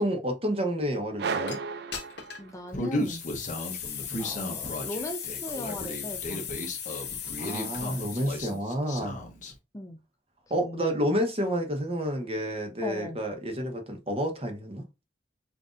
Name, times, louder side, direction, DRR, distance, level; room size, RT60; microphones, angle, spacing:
voice 1, 0.0-1.6 7.4-9.2 10.5-14.8, equal, 35° right, 1.0 m, -29 dB
sound 1, 1.2-3.0, right 5 dB, 65° right, 0.4 m, -34 dB
sound 2, 1.5-1.6 1.9-2.5 3.0-8.6, left 8 dB, 65° left, 1.2 m, -37 dB
voice 2, 2.4-3.2 4.2-6.7 9.7-10.0 10.6-11.1 12.8-13.2, left 1 dB, 20° left, 0.5 m, -38 dB
Human voice, 2.7-9.5, left 1 dB, 45° left, 1.0 m, -35 dB
6.1 x 2.6 x 2.5 m
head